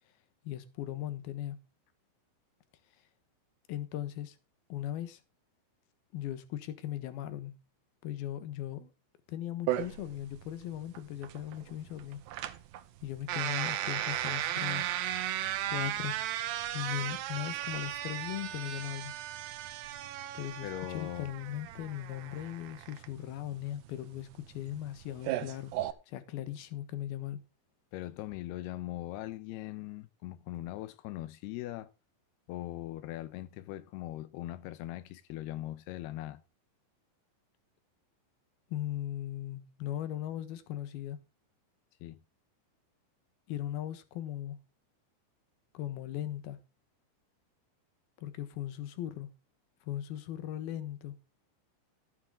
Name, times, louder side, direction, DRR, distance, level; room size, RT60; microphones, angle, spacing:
voice 1, 0.4-1.6 3.7-4.4 4.7-5.2 6.1-7.6 8.0-8.9 9.3-12.2 13.0-14.9 15.7-16.2 16.7-19.1 20.4-20.7 20.9-25.8 26.1-27.4 38.7-41.2 43.5-44.6 45.7-46.6 48.2-49.3 49.9-51.1, left 12 dB, 65° left, 2.6 m, -38 dB
sound 1, 9.7-25.9, right 12 dB, 75° right, 2.7 m, -36 dB
voice 2, 20.6-21.3 27.9-31.9 32.5-36.4 42.0-42.2, left 15 dB, 90° left, 2.3 m, -40 dB
14.5 x 9.5 x 3.7 m
omnidirectional pair, 5.6 m